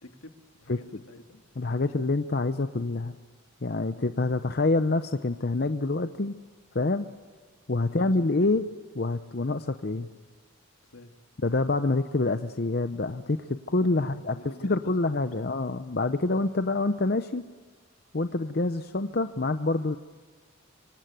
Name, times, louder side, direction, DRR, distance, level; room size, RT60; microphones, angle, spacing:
voice 1, 0.0-1.4 3.9-4.2 7.8-8.5 9.3-9.6 10.8-11.2 13.9-14.9 15.4-15.5, left 2 dB, 75° left, 6 dB, 2.0 m, -49 dB
voice 2, 0.7-1.0 1.6-3.2 3.6-6.3 6.7-7.1 7.7-8.6 9.0-10.1 11.4-14.3 14.6-17.4 18.1-20.0, left 2 dB, 45° left, 10 dB, 0.7 m, -26 dB
25.5 x 25.5 x 9.1 m, 1.5 s
head